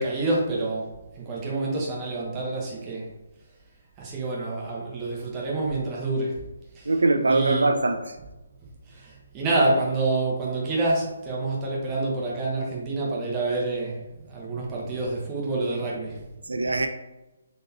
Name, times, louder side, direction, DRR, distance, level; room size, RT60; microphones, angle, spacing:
voice 1, 0.0-3.1 4.0-6.4 6.7-6.9 7.2-7.7 8.8-16.7, right 2 dB, 20° right, -3 dB, 1.0 m, -28 dB
voice 2, 6.9-8.1 16.5-16.9, right 2 dB, 70° right, 7 dB, 0.4 m, -22 dB
4.0 x 3.1 x 2.8 m, 1.0 s
figure-of-eight pair, 140°, 0 cm